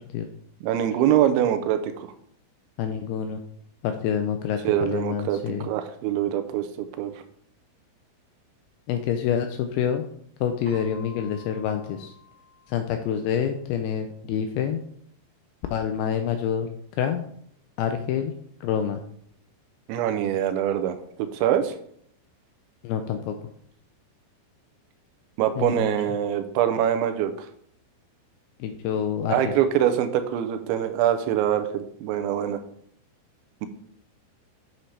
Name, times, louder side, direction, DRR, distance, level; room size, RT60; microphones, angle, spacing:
voice 1, 0.6-2.1 4.6-6.7 7.0-7.1 19.9-21.0 21.3-21.7 25.4-27.5 29.3-32.6, right 10 dB, 90° right, 9 dB, 3.1 m, -24 dB
voice 2, 2.8-3.4 3.8-5.7 8.9-10.1 10.4-12.1 12.7-14.8 15.7-16.7 17.0-17.2 17.8-18.3 18.6-19.0 22.8-23.4 25.6-26.0 28.6-29.5, left 8 dB, 85° left, 6 dB, 2.2 m, -27 dB
Keyboard (musical), 10.6-13.4, left 2 dB, 50° right, 1.8 m, -50 dB
9.0 x 7.1 x 3.3 m, 0.66 s
omnidirectional pair, 5.2 m